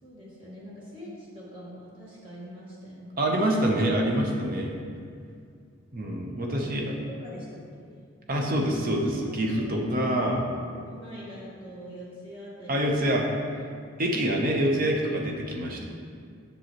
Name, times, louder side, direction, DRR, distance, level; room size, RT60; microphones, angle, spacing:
voice 1, 0.0-3.4 6.6-8.0 9.2-10.2 10.9-13.0, equal, 25° right, -7 dB, 1.7 m, -44 dB
voice 2, 3.2-4.7 5.9-6.9 8.3-10.4 12.7-13.3 14.0-15.8, right 1 dB, 40° right, 0 dB, 0.8 m, -26 dB
7.6 x 6.9 x 3.0 m, 2.2 s
head